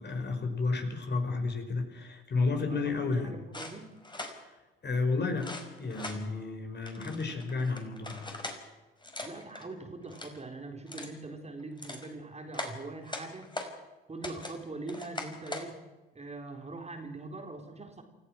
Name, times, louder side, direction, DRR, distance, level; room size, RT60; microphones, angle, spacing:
voice 1, 0.0-3.4 4.8-5.5 5.8-8.2, left 3 dB, 35° left, 5 dB, 5.3 m, -31 dB
voice 2, 2.7-4.0 9.2-13.5 14.1-15.8 16.1-18.0, right 3 dB, 20° right, 4 dB, 4.3 m, -42 dB
sound 1, 3.5-4.4 5.4-6.2 6.9-8.6 9.0-9.6 10.0-10.4 10.9-11.2 11.6-12.1 12.5-13.7 14.2-14.6 14.9-15.7, left 2 dB, 15° left, 5.3 m, -41 dB
28.5 x 14.5 x 6.3 m, 1.2 s
hypercardioid pair, 60°, 29 cm